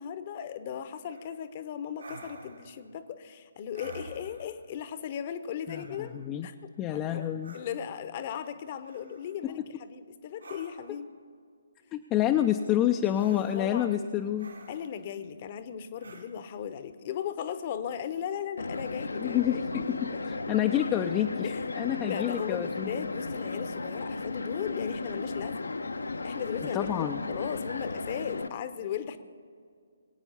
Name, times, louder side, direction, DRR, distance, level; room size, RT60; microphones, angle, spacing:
voice 1, 0.0-6.1 6.4-7.3 7.5-11.1 13.3-14.1 14.7-19.8 21.4-21.7 22.1-25.8 26.2-29.2, left 9 dB, 35° left, 12 dB, 0.8 m, -37 dB
sound 1, 1.1-1.4 2.0-2.8 3.7-4.6 5.6-6.3 7.4-7.6 8.8-9.4 10.4-11.0 13.1-13.7 14.4-15.0 16.0-16.3, right 3 dB, 70° right, 2.1 m, -49 dB
voice 2, 5.7-6.5 6.8-7.6 11.9-14.5 19.2-21.5 21.7-22.9 26.7-27.2, left 11 dB, 20° left, 5 dB, 0.4 m, -28 dB
sound 2, 18.6-28.5, left 3 dB, 70° left, 0.7 m, -35 dB
21.5 x 9.0 x 5.5 m, 2.2 s
figure-of-eight pair, 140°, 0 cm